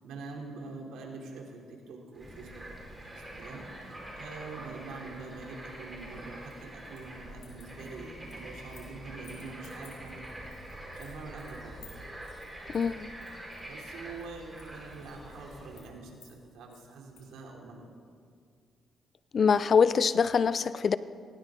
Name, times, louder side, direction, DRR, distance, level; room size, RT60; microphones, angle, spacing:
voice 1, 0.0-10.4 10.6-12.0 13.6-17.9, right 3 dB, 85° right, 0 dB, 3.1 m, -45 dB
Bird / Frog, 2.1-15.9, right 1 dB, 15° right, 4.6 m, -45 dB
sound 1, 6.0-7.1 7.4-8.9 9.2-17.3, left 7 dB, 85° left, 4.9 m, -58 dB
voice 2, 12.7-13.1 19.3-21.0, left 6 dB, 45° left, 16 dB, 0.5 m, -24 dB
19.0 x 18.0 x 3.8 m, 2.2 s
cardioid pair, 90°, 0 cm